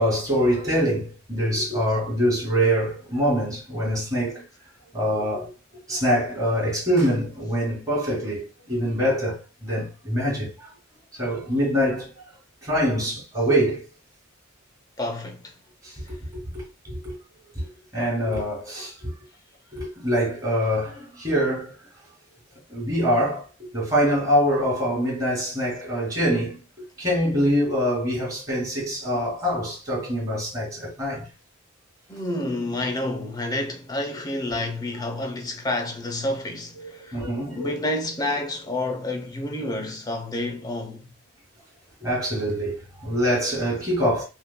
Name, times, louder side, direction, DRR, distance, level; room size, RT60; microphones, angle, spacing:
voice 1, 0.0-4.4 4.9-5.5 5.9-10.7 11.1-12.1 12.6-13.8 15.8-15.9 16.3-17.2 17.5-17.6 17.9-19.1 19.7-21.7 22.7-23.4 23.7-26.6 27.0-31.2 37.1-37.8 42.0-44.2, equal, 15° right, 2.3 m, -24 dB
voice 2, 15.0-15.5 32.1-41.1, left 1 dB, 20° left, 0.7 m, -29 dB
5.5 x 2.5 x 2.2 m
head